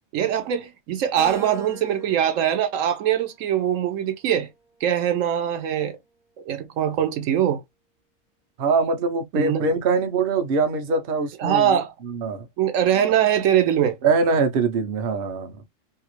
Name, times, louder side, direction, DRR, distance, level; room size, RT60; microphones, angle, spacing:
voice 1, 0.1-4.5 4.8-6.0 6.4-7.6 9.3-9.7 11.4-11.9 12.6-14.0, right 10 dB, 80° right, 1.0 m, -22 dB
Keyboard (musical), 1.2-3.7 4.3-5.5, right 3 dB, 5° right, 0.4 m, -44 dB
voice 2, 8.6-11.8 12.0-12.5 14.0-15.6, right 4 dB, 55° right, 0.8 m, -23 dB
2.8 x 2.4 x 3.0 m
omnidirectional pair, 1.3 m